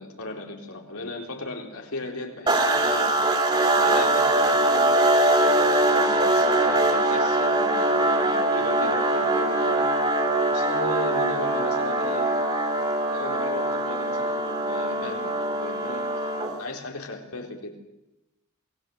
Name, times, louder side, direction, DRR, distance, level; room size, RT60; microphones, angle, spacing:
voice 1, 0.0-3.2 3.8-5.0 5.3-9.9 10.5-12.3 13.1-16.3 16.6-17.8, left 2 dB, 85° left, 1 dB, 3.9 m, -36 dB
sound 1, 2.5-16.7, right 2 dB, 20° right, 3.4 m, -22 dB
27.5 x 20.0 x 7.8 m, 0.96 s
head